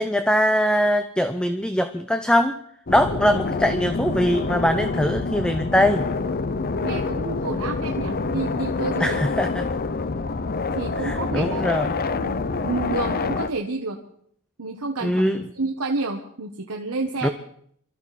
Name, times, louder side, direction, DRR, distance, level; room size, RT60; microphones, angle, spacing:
voice 1, 0.0-2.5 2.9-6.1 9.0-9.6 11.0-12.0 15.0-15.4 17.2-17.3, equal, 5° left, 9 dB, 0.7 m, -22 dB
sound 1, 2.9-13.5, left 3 dB, 45° left, 0.7 m, -26 dB
voice 2, 6.8-9.2 10.7-11.7 12.1-14.0 14.6-17.3, right 3 dB, 70° right, 2 dB, 1.3 m, -30 dB
24.5 x 14.0 x 4.2 m, 0.64 s
head